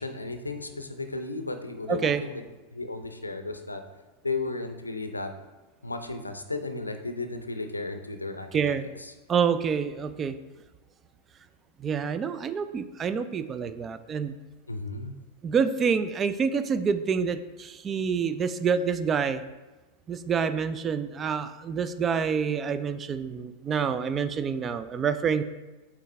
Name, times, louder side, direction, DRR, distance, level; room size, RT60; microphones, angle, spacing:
voice 1, 0.0-2.4 2.7-3.8 4.2-5.3 5.8-9.1 14.7-15.1, left 3 dB, 80° left, 7 dB, 0.5 m, -34 dB
voice 2, 1.9-2.2 8.5-8.8 9.3-10.4 11.8-14.3 15.4-19.4 20.1-25.4, right 6 dB, 25° right, 11 dB, 0.4 m, -27 dB
8.3 x 3.5 x 3.3 m, 1.2 s
figure-of-eight pair, 90°, 0 cm